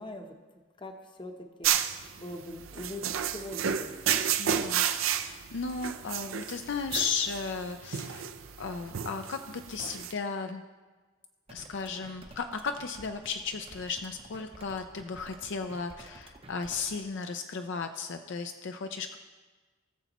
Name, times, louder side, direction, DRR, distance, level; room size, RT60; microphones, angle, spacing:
voice 1, 0.0-1.3 1.6-1.7 2.2-4.3, left 1 dB, 25° left, 5 dB, 0.8 m, -43 dB
sound 1, 1.6-10.1, right 9 dB, 70° right, 0.5 m, -31 dB
voice 2, 4.4-8.3 8.6-10.6 11.5-19.2, left 5 dB, 55° left, 7 dB, 0.4 m, -35 dB
sound 2, 11.5-17.0, right 2 dB, 30° right, 0.7 m, -52 dB
18.0 x 7.0 x 3.0 m, 1.3 s
head